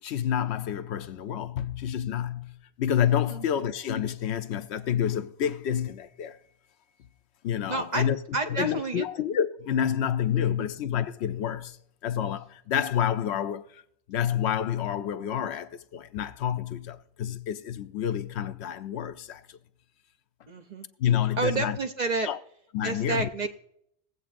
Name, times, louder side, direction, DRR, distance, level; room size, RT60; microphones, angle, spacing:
voice 1, 0.0-6.4 7.4-8.2 8.5-11.8 12.0-13.8 14.1-19.6 21.0-21.8 22.2-22.4 22.7-23.3, left 9 dB, 70° left, 0.8 m, -28 dB
voice 2, 7.7-8.1 8.3-9.1 10.3-10.7 20.5-20.9 21.4-22.3 22.8-23.5, right 3 dB, 45° right, 0.7 m, -30 dB
21.5 x 8.0 x 2.5 m
omnidirectional pair, 1.2 m